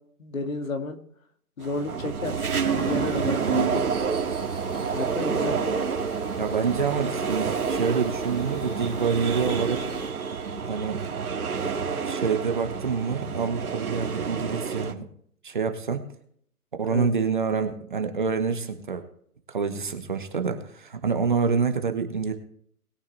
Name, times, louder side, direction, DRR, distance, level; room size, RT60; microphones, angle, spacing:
voice 1, 0.2-1.0 1.6-2.4 2.6-3.9 4.9-5.8 16.9-17.1, left 3 dB, 60° left, 6 dB, 2.1 m, -31 dB
sound 1, 1.6-14.9, right 6 dB, 65° right, 2.1 m, -28 dB
sound 2, 2.6-10.1, left 2 dB, 85° left, 3.8 m, -44 dB
voice 2, 6.4-9.8 10.7-11.0 12.1-15.1 15.4-16.0 16.8-19.0 19.5-22.3, right 5 dB, 30° right, 6 dB, 1.1 m, -27 dB
20.5 x 8.9 x 3.3 m, 0.64 s
hypercardioid pair, 165°, 47 cm